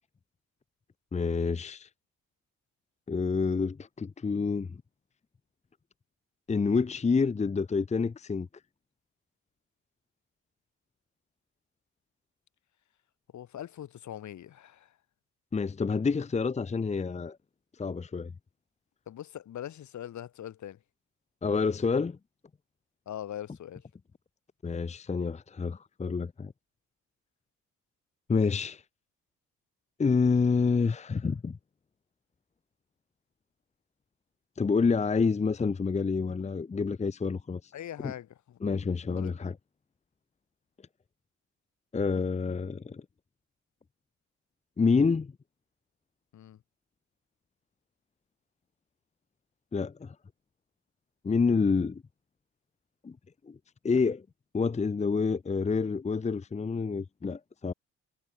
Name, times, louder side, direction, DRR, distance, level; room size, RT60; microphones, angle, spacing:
voice 1, 1.1-1.9 3.1-4.8 6.5-8.5 15.5-17.4 17.8-18.3 21.4-22.2 24.6-26.5 28.3-28.8 30.0-31.6 34.6-37.7 38.0-38.1 38.6-39.5 41.9-43.0 44.8-45.3 49.7-50.1 51.2-52.0 53.0-53.2 53.4-53.6 53.8-54.2 54.5-57.7, left 4 dB, 20° left, 0.8 m, -28 dB
voice 2, 13.3-15.0 19.1-20.8 23.1-23.9 37.7-38.6 39.1-39.4 46.3-46.6, left 11 dB, 70° left, 7.9 m, -42 dB
cardioid pair, 90°, 30 cm